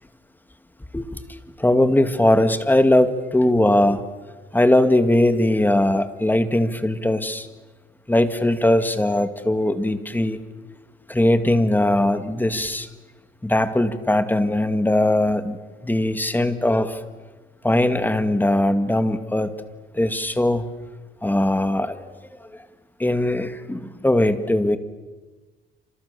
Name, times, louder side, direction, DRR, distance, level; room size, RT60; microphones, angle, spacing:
voice 1, 1.6-4.0 4.5-7.5 8.1-10.4 11.1-12.9 13.4-15.6 15.8-17.0 17.6-19.5 19.9-20.7 21.2-22.0 23.0-24.8, left 1 dB, 10° left, 9 dB, 2.1 m, -20 dB
28.5 x 27.0 x 7.0 m, 1.3 s
cardioid pair, 90°, 20 cm